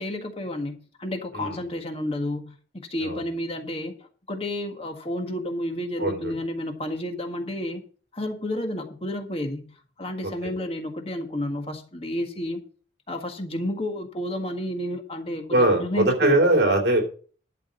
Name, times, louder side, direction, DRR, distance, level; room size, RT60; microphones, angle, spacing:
voice 1, 0.0-7.8 8.1-9.6 10.0-12.6 13.1-16.4, left 1 dB, 30° left, 4 dB, 1.6 m, -31 dB
voice 2, 6.0-6.3 10.4-10.5 15.5-17.0, right 1 dB, 60° right, 2 dB, 3.0 m, -21 dB
12.0 x 5.1 x 8.1 m, 0.42 s
head